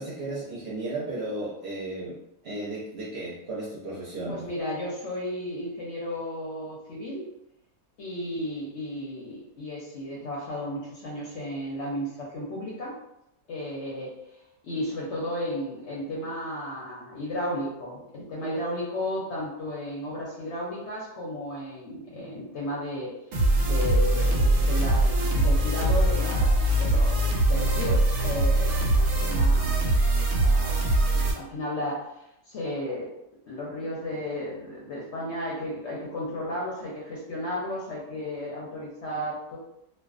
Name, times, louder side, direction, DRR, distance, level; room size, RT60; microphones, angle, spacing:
voice 1, 0.0-2.2 2.4-4.4, right 2 dB, 55° right, -6 dB, 0.7 m, -34 dB
voice 2, 4.3-7.2 8.0-13.0 13.5-14.1 14.6-23.1 23.6-30.8 31.1-33.1 33.5-39.6, left 1 dB, 65° left, -4 dB, 0.8 m, -34 dB
sound 1, 23.3-31.3, right 1 dB, 90° right, 1.1 m, -22 dB
2.4 x 2.2 x 2.4 m, 0.84 s
omnidirectional pair, 1.5 m